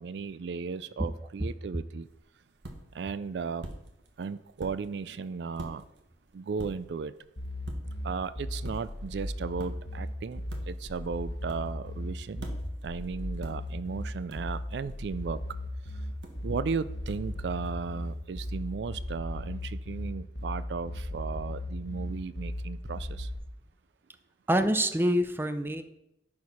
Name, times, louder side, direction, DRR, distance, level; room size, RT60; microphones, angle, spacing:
voice 1, 0.0-2.1 2.9-3.6 4.2-5.8 6.3-7.1 8.0-12.5 12.8-15.4 16.4-23.3, right 5 dB, 70° right, 14 dB, 0.4 m, -35 dB
sound 1, 2.0-18.8, right 1 dB, 90° right, 1.4 m, -50 dB
sound 2, 7.4-23.4, left 1 dB, 80° left, 1.6 m, -36 dB
voice 2, 24.5-25.8, equal, 15° right, 9 dB, 0.6 m, -26 dB
10.5 x 4.8 x 5.6 m, 0.84 s
head